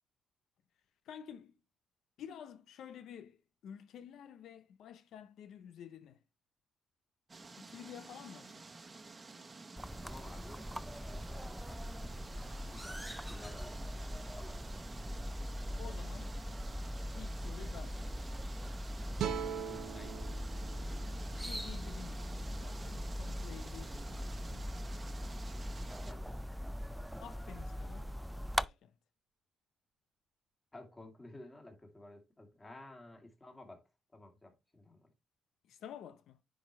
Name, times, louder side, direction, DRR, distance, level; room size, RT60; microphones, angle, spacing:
voice 1, 1.1-1.6 2.2-3.4 3.6-6.2 7.6-8.6 15.8-16.3 17.1-18.3 21.3-24.7 27.2-28.1 28.6-28.9 35.7-36.4, left 9 dB, 75° left, 0.6 m, -51 dB
sound 1, 7.3-26.1, right 3 dB, 30° right, 1.1 m, -51 dB
sound 2, 9.8-28.7, equal, 5° right, 0.3 m, -41 dB
voice 2, 10.0-12.4 12.7-14.7 19.7-20.5 26.1-26.4 30.7-33.8 34.1-35.1, left 2 dB, 20° left, 2.6 m, -54 dB
sound 3, 19.2-22.4, right 8 dB, 70° right, 0.8 m, -42 dB
9.9 x 4.8 x 3.2 m
cardioid pair, 90°, 0 cm